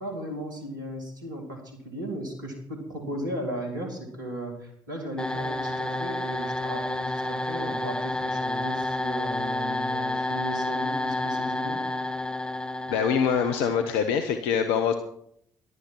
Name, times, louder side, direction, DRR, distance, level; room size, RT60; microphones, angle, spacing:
voice 1, 0.0-11.9, right 1 dB, 85° right, 2 dB, 2.6 m, -36 dB
sound 1, 5.2-14.1, left 1 dB, 10° left, 2.0 m, -30 dB
voice 2, 12.9-14.9, left 7 dB, 70° left, 7 dB, 0.9 m, -24 dB
15.0 x 11.5 x 4.6 m, 0.69 s
figure-of-eight pair, 45°, 10 cm